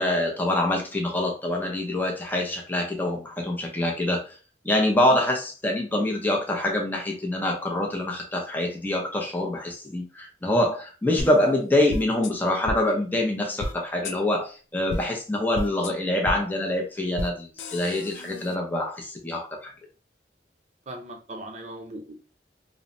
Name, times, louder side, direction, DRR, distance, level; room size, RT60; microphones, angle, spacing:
voice 1, 0.0-4.3 4.6-19.7, left 1 dB, 10° left, 1 dB, 0.5 m, -25 dB
sound 1, 11.2-11.3 11.9-12.3 12.7-12.8 13.6-13.7 14.0-14.2 14.9-15.0 15.5-15.9 16.2-16.4 17.2-17.3 17.6-18.6, left 1 dB, 85° left, 0.3 m, -32 dB
voice 2, 20.9-22.1, right 1 dB, 40° right, 2 dB, 0.5 m, -38 dB
3.0 x 2.1 x 2.5 m, 0.35 s
head